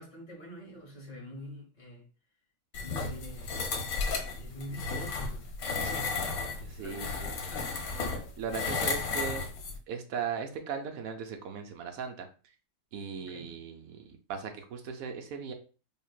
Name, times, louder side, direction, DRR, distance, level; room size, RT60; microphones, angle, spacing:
voice 1, 0.0-2.0 2.8-3.5 4.4-6.5 6.8-7.9 13.2-13.5, equal, 30° left, 1.1 m, -46 dB
sound 1, 2.7-9.8, left 4 dB, 80° left, 1.1 m, -34 dB
voice 2, 6.6-7.3 8.4-9.5 9.9-12.3 12.9-15.5, right 6 dB, 75° right, 1.1 m, -38 dB
3.6 x 2.7 x 2.3 m
omnidirectional pair, 1.5 m